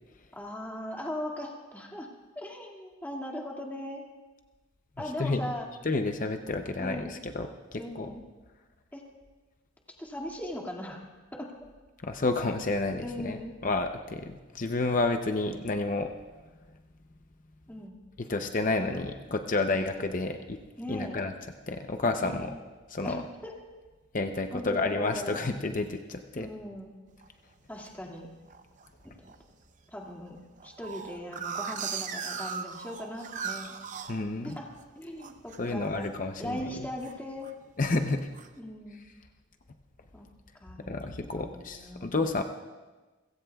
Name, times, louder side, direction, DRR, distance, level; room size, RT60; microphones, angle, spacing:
voice 1, 0.3-2.1 2.4-4.1 5.0-5.7 6.8-7.2 7.8-8.2 8.9-9.0 10.0-11.0 11.3-11.5 13.0-13.5 17.7-18.0 20.8-21.2 22.2-22.5 23.0-23.5 24.5-25.4 26.3-27.0 27.7-28.3 29.0-29.1 29.9-30.4 30.6-33.8 34.4-34.7 34.9-36.1 36.4-37.5 38.6-39.0 40.1-40.3 40.6-41.0 41.4-42.1, left 1 dB, 10° left, -1 dB, 2.2 m, -39 dB
voice 2, 5.8-8.1 12.0-16.1 18.2-20.6 20.9-21.3 21.7-22.5 22.9-23.2 24.1-26.5 34.1-34.6 35.6-36.9 37.8-38.3 40.9-42.4, left 3 dB, 40° left, 5 dB, 0.7 m, -30 dB
Magpie (Western), 27.2-27.9 28.5-28.9 29.3-29.4 29.6-29.7 30.0-34.8 35.2-35.6 35.9-36.3 36.6-37.5 38.0-38.5, right 6 dB, 40° right, 0.7 m, -38 dB
30.0 x 16.5 x 2.4 m, 1.2 s
head